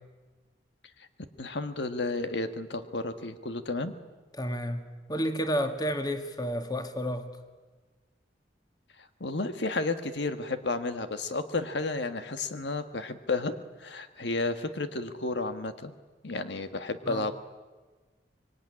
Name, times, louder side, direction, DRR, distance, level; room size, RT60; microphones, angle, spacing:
voice 1, 1.4-3.9 9.2-13.5 13.8-15.9 16.2-17.3, left 3 dB, 70° left, 1.5 m, -32 dB
voice 2, 4.4-4.8 5.1-7.3 17.0-17.3, equal, 20° left, 1.9 m, -30 dB
25.0 x 23.5 x 9.9 m
head